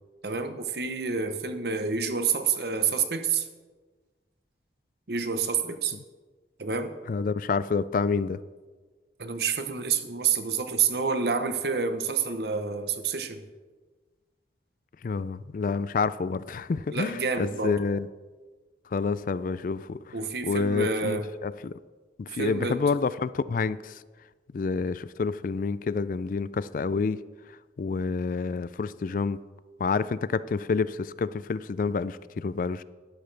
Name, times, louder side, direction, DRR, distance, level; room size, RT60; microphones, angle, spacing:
voice 1, 0.2-3.5 5.1-5.9 6.6-6.9 9.2-13.4 16.9-17.8 20.1-21.3 22.4-22.8, right 5 dB, 60° right, 0.9 m, -28 dB
voice 2, 7.1-8.4 15.0-18.1 18.9-20.2 20.4-21.8 22.2-24.0 24.5-27.2 27.8-29.4 29.8-32.8, left 4 dB, 50° left, 0.3 m, -28 dB
12.0 x 12.0 x 3.4 m
head